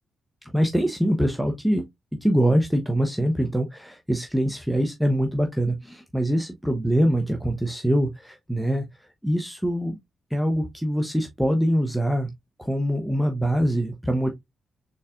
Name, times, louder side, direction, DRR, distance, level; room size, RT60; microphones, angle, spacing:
voice 1, 0.4-1.8 2.2-8.9 9.2-10.0 10.3-12.3 12.6-14.3, equal, 5° right, 0.8 m, -24 dB
3.9 x 3.6 x 2.4 m
supercardioid pair, 50°, 0 cm